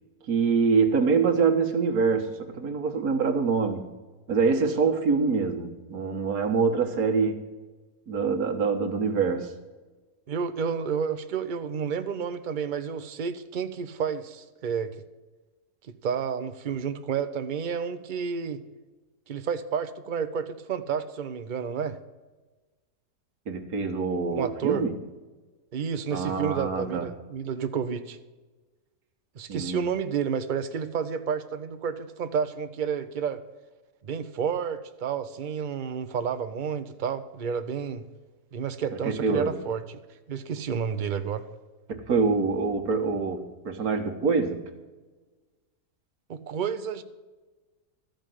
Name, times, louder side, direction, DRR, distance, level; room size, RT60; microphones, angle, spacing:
voice 1, 0.3-3.9 4.3-7.5 8.1-9.5 23.5-24.9 26.1-27.1 29.5-29.8 39.0-39.6 41.9-44.6, right 5 dB, 70° right, 4 dB, 1.7 m, -25 dB
voice 2, 10.3-14.9 15.9-18.6 19.3-22.0 24.3-24.8 25.7-28.2 29.3-33.4 34.0-38.0 38.5-39.8 40.3-41.4 46.3-47.0, right 7 dB, 45° right, 10 dB, 0.6 m, -30 dB
13.5 x 5.2 x 9.2 m, 1.3 s
omnidirectional pair, 1.6 m